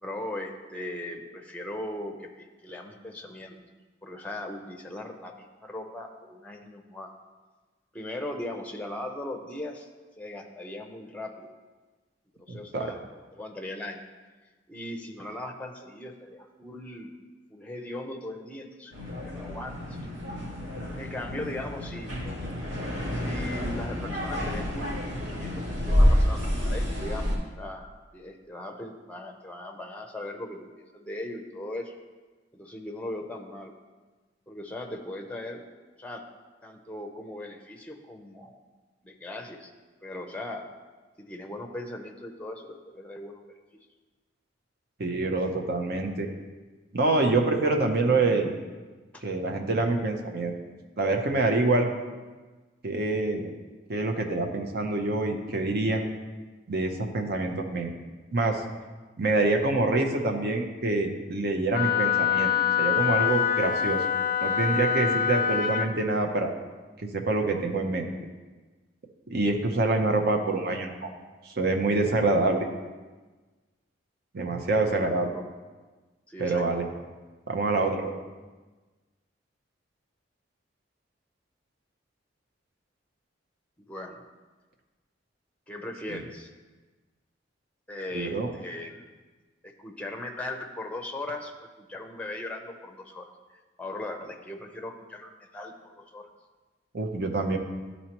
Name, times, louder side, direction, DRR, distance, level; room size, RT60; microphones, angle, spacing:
voice 1, 0.0-3.6 4.0-7.1 7.9-9.9 10.2-11.5 12.4-13.0 13.3-14.0 14.7-17.1 17.5-20.2 21.0-22.2 23.1-25.0 25.3-30.7 30.9-31.9 32.5-33.7 34.5-35.6 36.0-36.2 36.6-38.6 39.0-39.7 40.0-40.6 41.2-43.6 49.1-49.2 75.0-75.5 76.3-76.7 83.8-84.2 85.7-86.5 87.9-89.1 89.6-93.3 93.8-96.3, left 1 dB, 5° left, 3 dB, 0.6 m, -39 dB
voice 2, 12.5-12.9 45.0-46.3 46.9-48.5 49.2-50.5 51.0-51.9 52.8-53.5 53.9-56.1 56.7-57.9 58.3-58.6 59.2-62.5 62.8-64.0 64.4-66.5 67.0-68.1 69.3-71.1 71.5-72.7 74.3-75.3 76.4-76.8 77.5-78.1 88.1-88.5 96.9-97.6, right 2 dB, 60° right, 3 dB, 0.7 m, -26 dB
sound 1, 18.9-27.4, equal, 85° right, 2.1 m, -28 dB
Wind instrument woodwind instrument, 61.7-65.9, left 8 dB, 50° left, 0.4 m, -25 dB
12.0 x 4.1 x 3.0 m, 1.3 s
head